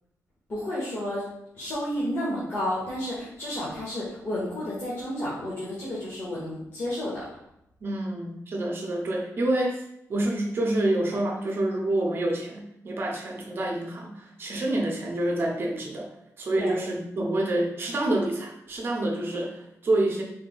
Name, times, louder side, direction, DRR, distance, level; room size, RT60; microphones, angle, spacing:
voice 1, 0.5-1.2 1.5-7.2 16.6-16.7, left 1 dB, 40° left, -8 dB, 1.0 m, -31 dB
voice 2, 7.8-9.8 10.1-16.1 16.4-20.2, right 1 dB, 40° right, 0 dB, 0.7 m, -27 dB
3.3 x 2.7 x 3.8 m, 0.79 s
wide cardioid pair, 180°, 6 cm